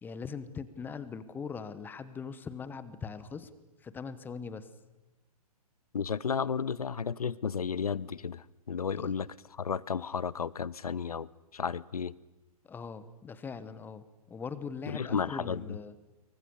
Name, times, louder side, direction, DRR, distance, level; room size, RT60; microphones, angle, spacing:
voice 1, 0.0-3.5 3.8-4.7 9.0-9.1 12.6-15.9, left 5 dB, 10° left, 1.1 m, -41 dB
voice 2, 5.9-12.1 14.9-15.6, left 6 dB, 70° left, 0.8 m, -33 dB
24.5 x 23.5 x 6.8 m
figure-of-eight pair, 115°, 20 cm